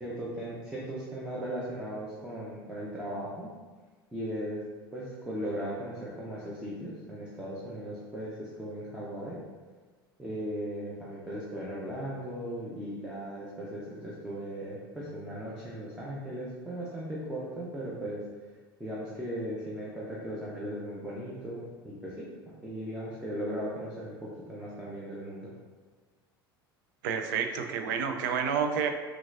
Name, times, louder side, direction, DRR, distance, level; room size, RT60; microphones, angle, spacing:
voice 1, 0.0-3.5 4.1-4.6 4.9-9.4 10.2-18.2 18.8-22.3 22.6-25.5, equal, 5° right, -6 dB, 0.8 m, -37 dB
voice 2, 27.0-28.9, right 6 dB, 55° right, 6 dB, 0.4 m, -29 dB
5.8 x 2.4 x 2.6 m, 1.4 s
figure-of-eight pair, 75°, 13 cm